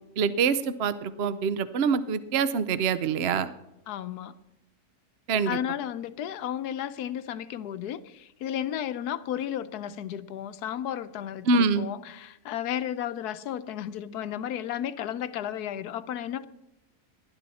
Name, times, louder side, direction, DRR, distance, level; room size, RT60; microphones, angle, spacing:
voice 1, 0.2-3.5 5.3-5.6 11.5-11.9, right 5 dB, 55° right, 0.7 m, -25 dB
voice 2, 3.9-4.3 5.5-16.5, left 10 dB, 75° left, 1.3 m, -33 dB
19.5 x 11.5 x 4.2 m
omnidirectional pair, 1.7 m